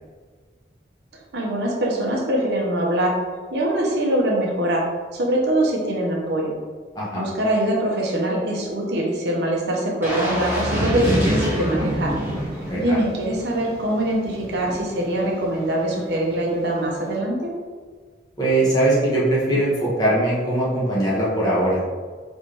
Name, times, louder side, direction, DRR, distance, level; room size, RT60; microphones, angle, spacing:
voice 1, 1.3-3.2 3.5-4.8 5.1-6.5 7.1-12.1 12.7-17.5, right 1 dB, 75° right, -2 dB, 0.8 m, -23 dB
sound 1, 10.0-13.0 13.4-13.5, equal, 10° right, 1.0 m, -29 dB
sound 2, 10.6-16.3 16.8-17.1, equal, 55° right, 1.1 m, -28 dB
voice 2, 12.6-13.0 18.4-21.8, right 1 dB, 20° left, -7 dB, 1.1 m, -21 dB
4.6 x 3.3 x 2.9 m, 1.5 s
head